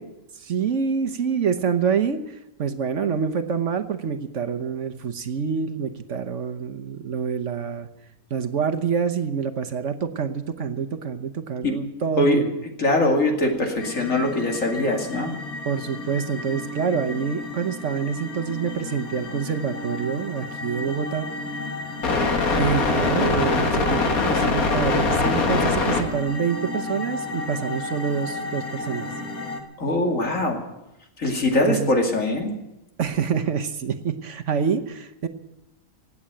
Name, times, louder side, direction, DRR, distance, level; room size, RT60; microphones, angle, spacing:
voice 1, 0.3-7.9 8.3-12.5 15.7-21.3 22.6-29.1 31.7-32.0 33.0-35.3, right 6 dB, 60° right, 9 dB, 1.3 m, -26 dB
voice 2, 12.8-15.3 29.8-30.6 31.2-32.5, left 1 dB, 65° left, 2 dB, 2.8 m, -22 dB
sound 1, 13.8-29.6, left 3 dB, 80° left, 2.2 m, -27 dB
17.0 x 8.6 x 9.0 m, 0.93 s
omnidirectional pair, 1.5 m